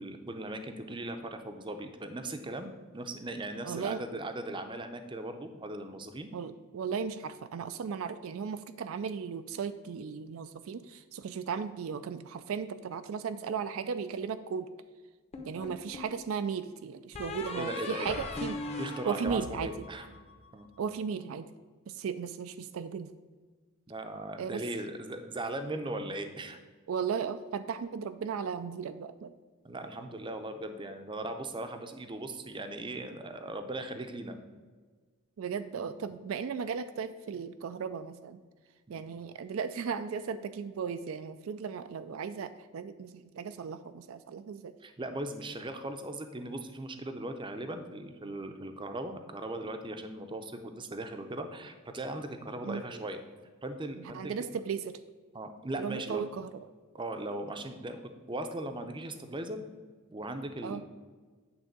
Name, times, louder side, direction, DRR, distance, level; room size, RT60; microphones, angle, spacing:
voice 1, 0.0-6.3 15.5-15.7 17.5-18.2 18.8-20.1 20.5-20.7 23.9-26.6 29.6-34.4 35.8-35.9 38.9-39.0 44.8-53.2 53.6-54.5 55.3-56.2 56.9-59.6 60.1-60.8, right 1 dB, 20° right, 7 dB, 0.6 m, -38 dB
voice 2, 3.6-4.0 6.3-14.7 15.4-18.6 19.1-19.7 20.8-21.5 21.9-23.1 24.4-24.6 26.9-29.3 35.4-38.4 38.9-44.8 52.6-52.8 54.1-55.0 55.8-56.7 60.6-60.8, right 6 dB, 70° right, 11 dB, 0.4 m, -36 dB
sound 1, 15.3-16.2 17.1-20.5, left 3 dB, 30° left, 0.9 m, -39 dB
8.8 x 3.6 x 6.6 m, 1.4 s
head